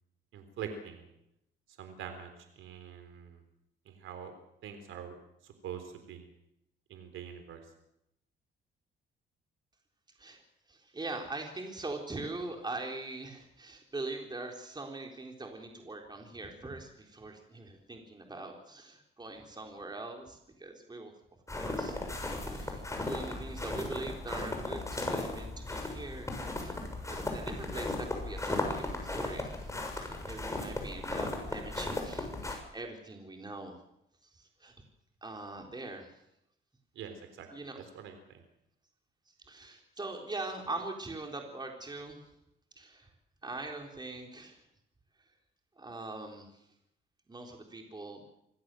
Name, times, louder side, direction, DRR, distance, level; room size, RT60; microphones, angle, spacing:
voice 1, 0.3-1.1 1.8-2.3 2.6-3.4 3.9-4.3 4.6-5.2 5.4-6.3 6.9-7.6 37.0-37.5 37.9-38.4, right 8 dB, 85° right, 7 dB, 3.9 m, -44 dB
voice 2, 10.7-21.1 21.6-22.0 22.5-26.8 27.1-33.8 34.2-34.7 35.2-36.2 37.5-37.8 39.4-42.2 42.8-43.1 43.4-44.6 45.8-46.6 47.3-48.2, right 2 dB, 20° right, 2 dB, 4.1 m, -42 dB
sound 1, 21.5-32.5, left 2 dB, 15° left, 6.7 m, -36 dB
26.5 x 16.5 x 7.9 m, 0.82 s
cardioid pair, 90°, 20 cm